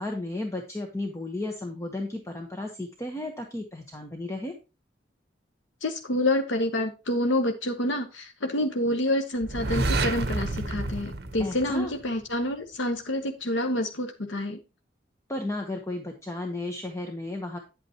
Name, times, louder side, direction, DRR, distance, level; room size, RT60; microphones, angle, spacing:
voice 1, 0.0-4.5 11.4-11.9 15.3-17.6, left 2 dB, 15° left, 1.0 m, -34 dB
voice 2, 5.8-14.6, left 1 dB, 90° left, 1.0 m, -28 dB
sound 1, 9.4-12.3, right 2 dB, 55° right, 0.9 m, -29 dB
9.8 x 8.5 x 2.9 m
head